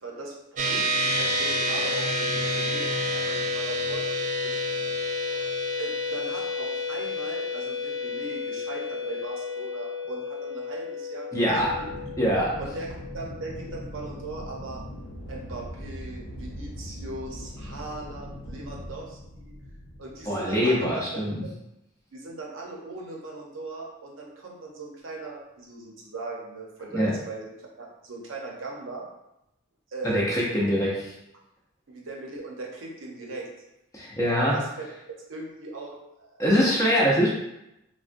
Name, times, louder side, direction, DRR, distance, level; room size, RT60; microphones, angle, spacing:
voice 1, 0.0-4.5 5.3-5.5 5.8-11.4 11.7-11.9 12.6-14.8 15.3-19.5 20.0-21.2 22.1-29.0 29.9-30.2 31.9-33.5 34.4-34.8 35.3-36.3, right 3 dB, 75° right, -1 dB, 0.7 m, -39 dB
sound 1, 0.6-14.2, left 1 dB, 35° right, 0.3 m, -30 dB
voice 2, 11.3-11.7 12.2-12.5 20.2-21.4 26.9-27.1 30.0-30.9 33.9-34.5 36.4-37.3, equal, 15° left, -4 dB, 0.6 m, -23 dB
Aircraft, 11.5-20.9, equal, 75° left, 0.6 m, -40 dB
3.6 x 2.2 x 2.5 m, 0.87 s
head